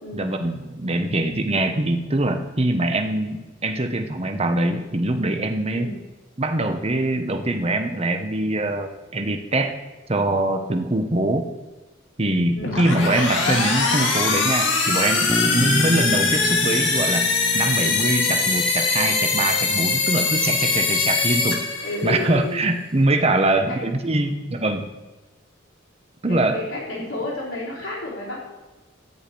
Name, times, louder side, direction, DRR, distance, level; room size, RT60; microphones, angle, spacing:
voice 1, 0.1-5.9 6.4-9.8 10.1-11.5 12.2-17.3 17.5-21.6 22.0-24.9 26.2-26.6, right 2 dB, 30° right, 6 dB, 1.0 m, -23 dB
sound 1, 12.6-22.3, left 4 dB, 65° left, 2.1 m, -22 dB
Bass guitar, 15.3-19.2, equal, 5° right, 0.8 m, -31 dB
voice 2, 21.8-22.6 23.4-23.8 26.3-28.4, left 2 dB, 90° left, -6 dB, 4.5 m, -31 dB
13.5 x 4.9 x 8.5 m, 1.1 s
head